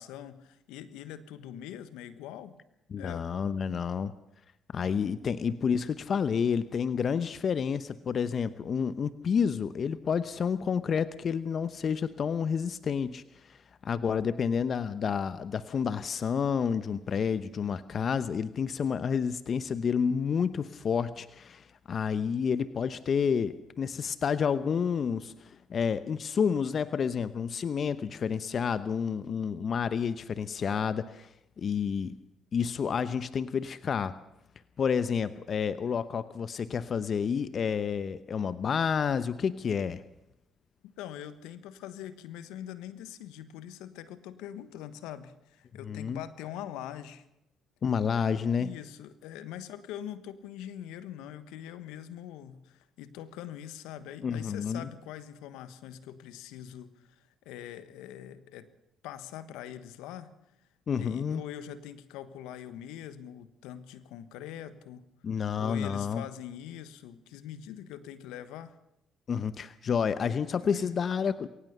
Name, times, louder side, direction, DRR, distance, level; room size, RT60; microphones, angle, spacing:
voice 1, 0.0-2.6 3.0-3.3 40.8-47.2 48.6-58.7 59.0-60.3 61.0-65.0 65.6-68.7 70.7-70.9, left 11 dB, 80° left, 13 dB, 1.3 m, -43 dB
voice 2, 2.9-4.1 4.7-13.6 13.8-31.3 31.6-32.2 32.5-34.2 34.8-40.0 45.8-46.2 47.8-48.7 54.2-54.9 60.9-61.4 65.2-66.2 69.3-71.5, left 6 dB, 55° left, 14 dB, 0.9 m, -29 dB
22.5 x 18.0 x 6.8 m, 0.84 s
hypercardioid pair, 55°, 0 cm